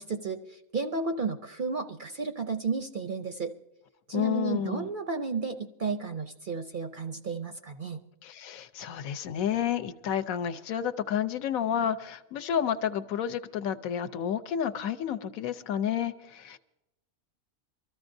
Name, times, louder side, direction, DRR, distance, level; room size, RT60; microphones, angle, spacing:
voice 1, 0.0-3.5 4.1-8.0, right 4 dB, 60° right, 7 dB, 0.5 m, -33 dB
voice 2, 4.1-4.9 8.2-16.6, left 9 dB, 75° left, 10 dB, 1.1 m, -30 dB
24.5 x 14.0 x 2.6 m, 0.93 s
omnidirectional pair, 1.5 m